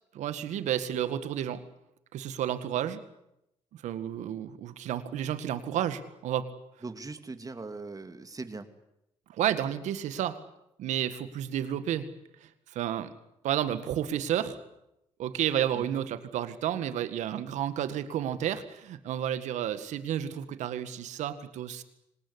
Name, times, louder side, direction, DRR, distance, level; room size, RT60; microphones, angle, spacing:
voice 1, 0.1-1.6 2.1-3.0 3.8-6.5 9.3-10.4 10.8-12.1 12.4-13.1 13.4-14.6 15.2-21.8, right 10 dB, 80° right, 12 dB, 1.9 m, -31 dB
voice 2, 6.8-8.7 15.7-16.0, right 3 dB, 30° right, 9 dB, 3.0 m, -40 dB
25.5 x 19.0 x 9.9 m, 0.84 s
supercardioid pair, 60°, 12 cm